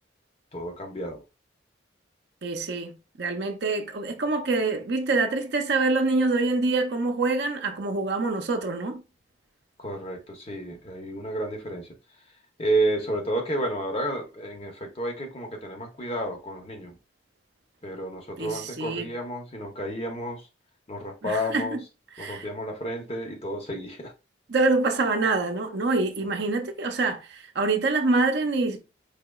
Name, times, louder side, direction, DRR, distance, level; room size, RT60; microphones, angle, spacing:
voice 1, 0.5-1.2 9.8-11.9 12.6-17.0 17.8-20.4 20.9-21.8 22.2-24.1, right 1 dB, 30° left, 0.7 m, -31 dB
voice 2, 2.4-9.0 18.4-19.1 21.2-21.8 22.2-22.5 24.5-28.8, right 3 dB, 60° right, 0.6 m, -26 dB
4.8 x 2.8 x 2.3 m
head